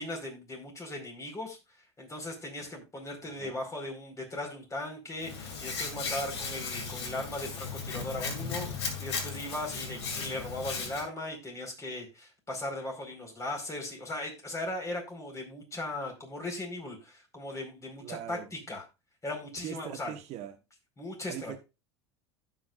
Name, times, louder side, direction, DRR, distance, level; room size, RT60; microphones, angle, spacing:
voice 1, 0.0-1.6 2.0-18.8 19.2-20.1 21.0-21.6, left 1 dB, 20° left, 4.6 m, -38 dB
Hands, 5.2-11.0, left 4 dB, 85° left, 2.5 m, -36 dB
voice 2, 18.0-18.5 19.6-20.6 21.3-21.6, right 11 dB, 55° right, 1.3 m, -41 dB
16.0 x 5.8 x 2.5 m
hypercardioid pair, 90°, 14 cm